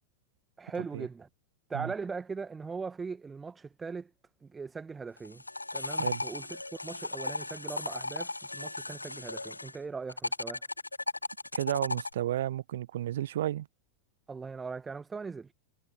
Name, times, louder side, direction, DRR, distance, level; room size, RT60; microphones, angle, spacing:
voice 1, 0.6-1.3 1.7-4.1 4.4-5.4 5.7-10.6 14.3-15.5, right 5 dB, 15° right, 1.4 m, -40 dB
sound 1, 5.2-9.8 10.1-12.1, left 2 dB, 85° left, 0.5 m, -36 dB
voice 2, 11.5-13.7, right 12 dB, 60° right, 1.2 m, -32 dB
figure-of-eight pair, 90°, 0 cm